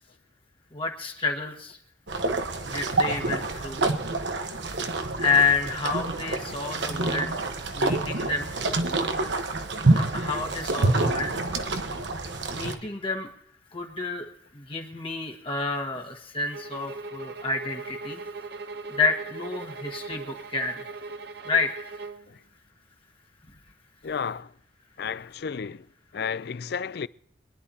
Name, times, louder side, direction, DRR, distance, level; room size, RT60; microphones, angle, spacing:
voice 1, 0.7-1.8 2.6-3.8 5.2-7.4 7.7-8.5 9.9-11.5 12.5-13.3 13.7-14.3 14.5-18.2 18.9-20.9 21.4-21.7, left 4 dB, 30° left, 1.6 m, -29 dB
sound 1, 2.1-12.7, right 2 dB, 85° right, 1.2 m, -27 dB
sound 2, 16.5-22.3, right 3 dB, 65° right, 0.8 m, -39 dB
voice 2, 24.0-24.5 25.0-25.9 26.1-27.1, left 6 dB, 60° left, 0.4 m, -33 dB
24.5 x 11.0 x 2.8 m
head